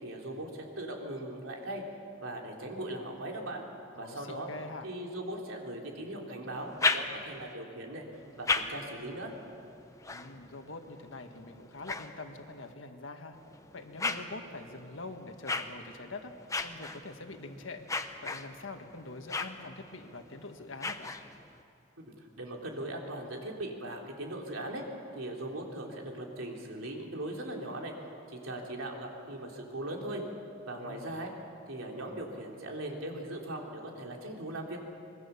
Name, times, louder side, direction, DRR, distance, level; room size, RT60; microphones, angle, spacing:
voice 1, 0.0-1.8 2.2-3.6 4.0-4.5 4.8-8.0 8.4-9.3 22.0-24.8 25.1-27.9 28.3-30.2 30.7-31.3 31.7-34.8, right 1 dB, 85° right, 0 dB, 3.5 m, -39 dB
voice 2, 3.9-4.9 10.1-13.4 13.7-16.3 16.6-17.8 18.2-21.1 30.7-31.2, left 3 dB, 70° left, 6 dB, 1.7 m, -44 dB
sound 1, 6.5-7.5 8.1-12.7 13.3-21.6, left 3 dB, 15° left, 0.8 m, -37 dB
25.0 x 21.5 x 7.0 m, 2.6 s
head